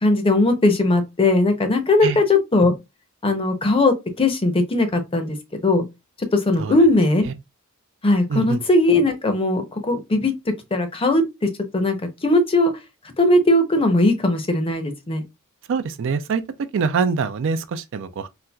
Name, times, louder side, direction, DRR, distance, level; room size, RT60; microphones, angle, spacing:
voice 1, 0.0-2.7 3.2-5.8 6.3-7.3 8.0-10.3 10.7-12.7 13.2-15.2, left 2 dB, 25° left, 0.6 m, -19 dB
voice 2, 15.7-16.4 16.7-18.3, right 5 dB, 60° right, 0.4 m, -24 dB
4.1 x 2.3 x 2.2 m
head